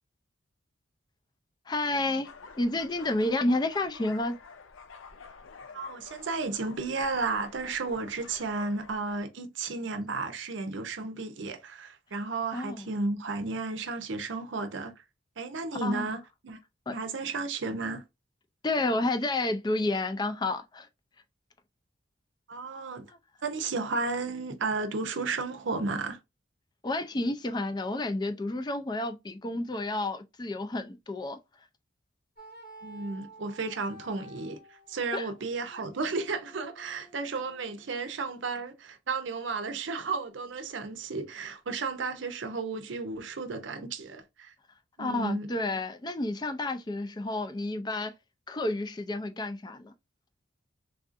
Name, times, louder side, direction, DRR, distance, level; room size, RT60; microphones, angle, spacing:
voice 1, 1.7-2.3 2.6-4.4 12.5-12.8 15.8-16.1 16.9-17.0 18.6-20.9 26.8-31.4 35.1-35.3 45.0-48.1 48.5-49.9, left 2 dB, 20° left, 0.4 m, -30 dB
sound 1, 2.2-9.2, left 5 dB, 90° left, 0.5 m, -49 dB
voice 2, 5.7-15.0 15.4-16.6 16.9-18.0 22.5-23.1 23.4-26.2 32.8-44.5 45.0-45.5, right 3 dB, 75° right, 0.6 m, -33 dB
sound 2, 32.4-38.2, right 1 dB, 45° left, 0.9 m, -52 dB
3.5 x 2.5 x 2.5 m
head